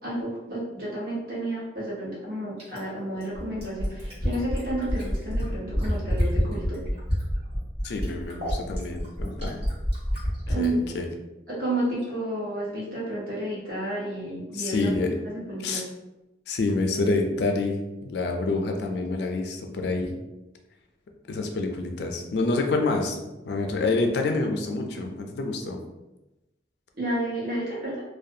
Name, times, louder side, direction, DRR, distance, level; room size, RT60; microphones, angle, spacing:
voice 1, 0.0-6.9 10.5-10.8 11.5-15.8 26.9-28.0, right 1 dB, 50° right, -6 dB, 0.9 m, -31 dB
Fill (with liquid), 2.6-10.7 12.0-12.1, equal, 30° right, 1.1 m, -27 dB
voice 2, 7.8-9.7 10.6-11.1 14.5-15.1 15.6-15.8 16.5-20.2 21.3-23.2 23.5-25.8, left 3 dB, 70° left, 3 dB, 0.4 m, -27 dB
2.4 x 2.2 x 2.6 m, 0.99 s
head